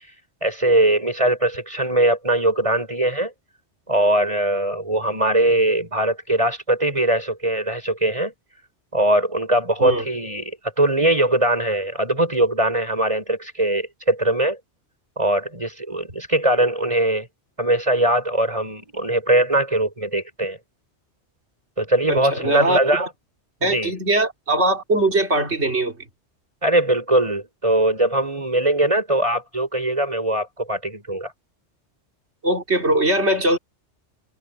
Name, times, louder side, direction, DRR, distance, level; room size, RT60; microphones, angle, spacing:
voice 1, 0.4-3.3 3.9-8.3 8.9-14.6 15.2-17.3 17.6-20.6 21.8-23.1 23.6-23.9 26.6-31.3, right 1 dB, 30° right, 5.8 m, -21 dB
voice 2, 22.1-23.1 23.6-26.0 32.4-33.6, right 1 dB, 70° right, 3.6 m, -21 dB
omnidirectional pair, 1.2 m